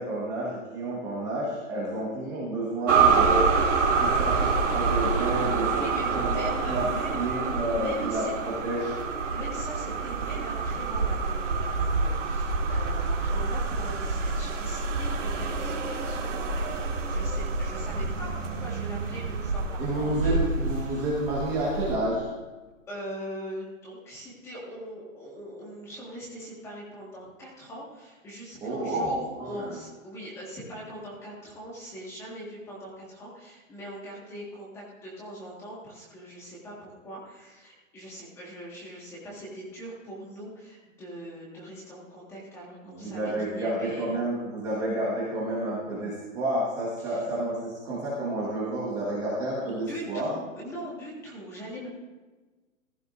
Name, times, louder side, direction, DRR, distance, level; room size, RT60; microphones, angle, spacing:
voice 1, 0.0-3.5 4.0-5.8 6.1-6.8 7.1-8.9 19.8-22.2 28.6-29.7 42.8-50.3, right 1 dB, 10° right, -7 dB, 1.4 m, -30 dB
sound 1, 2.9-22.0, right 4 dB, 65° right, 2.1 m, -27 dB
voice 2, 5.7-7.3 7.7-8.3 9.3-20.4 20.8-21.1 22.9-44.2 47.0-47.3 49.7-51.9, equal, 5° left, -5 dB, 1.6 m, -41 dB
15.0 x 15.0 x 2.6 m, 1.3 s
hypercardioid pair, 175°, 40 cm